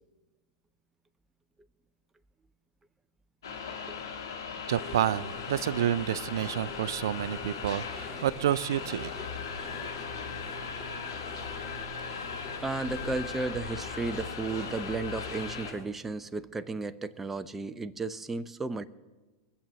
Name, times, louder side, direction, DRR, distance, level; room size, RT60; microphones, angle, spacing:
sound 1, 3.4-15.7, left 5 dB, 85° left, 2.3 m, -39 dB
sound 2, 4.7-15.9, left 3 dB, 25° left, 4.2 m, -45 dB
voice 1, 4.7-9.1, right 11 dB, 75° right, 14 dB, 0.4 m, -29 dB
voice 2, 12.6-18.9, right 3 dB, 15° right, 10 dB, 0.7 m, -34 dB
21.5 x 7.6 x 6.9 m, 1.2 s
hypercardioid pair, 110°, 2 cm